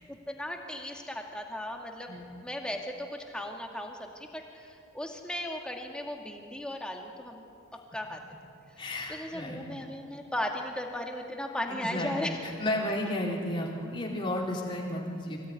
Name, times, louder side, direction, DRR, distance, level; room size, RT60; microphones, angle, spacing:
voice 1, 0.1-7.4 7.9-8.2 8.8-12.4, left 1 dB, 5° left, 2 dB, 2.2 m, -37 dB
voice 2, 8.8-9.6 11.7-15.5, left 1 dB, 25° left, -2 dB, 3.9 m, -33 dB
25.0 x 17.5 x 9.8 m, 2.5 s
head